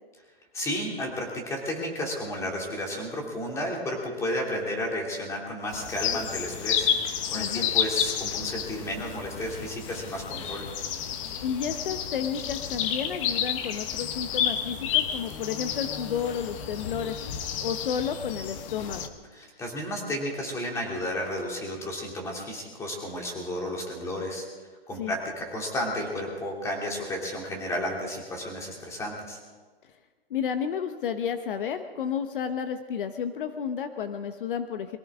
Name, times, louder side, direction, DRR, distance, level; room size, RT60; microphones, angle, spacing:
voice 1, 0.5-10.6 19.3-24.5 24.9-29.4, left 1 dB, 10° left, -1 dB, 2.8 m, -32 dB
sound 1, 5.7-19.1, left 9 dB, 30° left, 1.1 m, -31 dB
voice 2, 7.3-7.7 11.4-17.2 17.6-19.0 25.0-25.2 30.3-35.0, left 7 dB, 60° left, 8 dB, 1.1 m, -31 dB
23.5 x 16.5 x 3.7 m, 1.4 s
hypercardioid pair, 155°, 30 cm